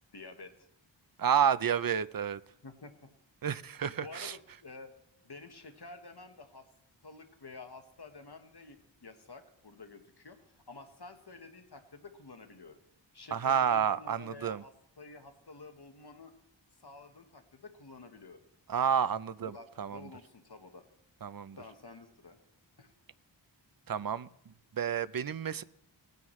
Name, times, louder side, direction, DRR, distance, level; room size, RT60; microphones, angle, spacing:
voice 1, 0.1-0.5 2.6-2.9 4.0-4.9 5.2-6.6 7.0-12.8 13.1-16.3 16.8-18.4 19.4-20.8 21.5-22.4 22.8-22.9, left 3 dB, 55° left, 6 dB, 1.4 m, -50 dB
voice 2, 1.2-2.4 3.4-4.4 13.3-14.6 18.7-20.0 21.2-21.6 23.9-24.3 24.7-25.6, right 8 dB, 50° right, 16 dB, 0.6 m, -30 dB
20.0 x 9.4 x 3.2 m, 0.73 s
wide cardioid pair, 55°, 46 cm